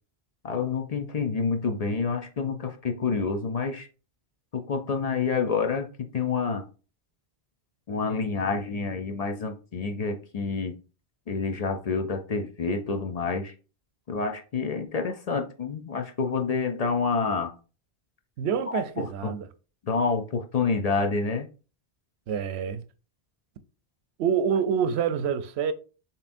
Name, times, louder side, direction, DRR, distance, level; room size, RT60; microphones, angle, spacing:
voice 1, 0.4-3.9 4.5-6.7 7.9-10.8 11.3-13.5 14.1-17.5 18.7-19.3 19.8-21.5, left 4 dB, 50° left, 0.5 m, -28 dB
voice 2, 18.4-19.5 22.3-22.8 24.2-25.7, right 7 dB, 85° right, 0.8 m, -26 dB
6.9 x 2.9 x 2.5 m
omnidirectional pair, 1.1 m